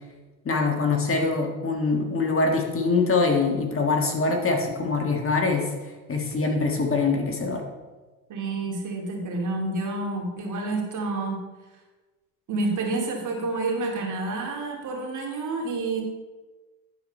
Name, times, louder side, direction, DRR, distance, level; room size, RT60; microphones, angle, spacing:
voice 1, 0.5-5.7 6.1-7.6, left 3 dB, 30° left, 2 dB, 1.6 m, -24 dB
voice 2, 8.3-11.4 12.5-16.0, right 3 dB, 45° right, -1 dB, 2.7 m, -29 dB
10.5 x 4.9 x 5.4 m, 1.2 s
supercardioid pair, 90°, 40 cm